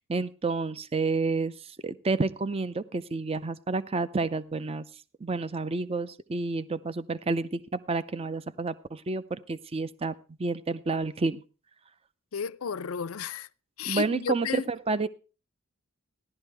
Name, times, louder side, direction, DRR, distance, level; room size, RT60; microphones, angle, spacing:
voice 1, 0.0-4.8 5.2-10.1 10.4-11.4 13.9-15.1, right 3 dB, 30° right, 0.5 m, -30 dB
voice 2, 12.3-13.5 13.8-14.7, left 7 dB, 80° left, 0.5 m, -33 dB
15.0 x 11.5 x 3.4 m
head